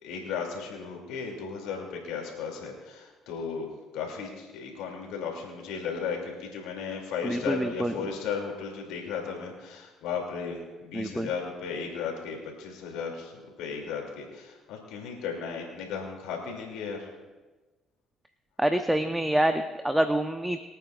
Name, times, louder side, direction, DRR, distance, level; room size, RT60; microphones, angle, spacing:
voice 1, 0.0-3.7 3.9-17.1, left 6 dB, 80° left, 1 dB, 2.7 m, -35 dB
voice 2, 7.2-7.9 10.9-11.3 18.6-20.6, right 1 dB, 10° right, 7 dB, 0.9 m, -26 dB
23.5 x 9.1 x 2.5 m, 1.2 s
hypercardioid pair, 60°, 0 cm